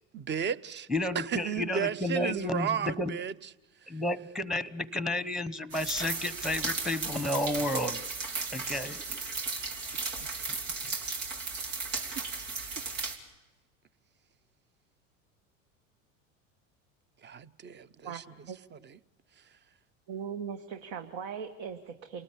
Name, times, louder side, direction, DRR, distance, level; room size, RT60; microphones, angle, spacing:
voice 1, 0.1-0.9 1.1-3.5 3.8-4.0 9.9-10.5 17.2-19.0 19.4-19.5, right 8 dB, 30° right, 0.8 m, -35 dB
voice 2, 0.9-3.2 3.9-8.0 8.5-9.0, left 1 dB, ahead, 1.0 m, -31 dB
sound 1, 5.7-13.2, right 4 dB, 80° right, 3.2 m, -35 dB
voice 3, 18.0-18.6 20.1-22.2, right 7 dB, 65° right, 1.6 m, -39 dB
28.5 x 19.0 x 8.4 m
hypercardioid pair, 85°, 38 cm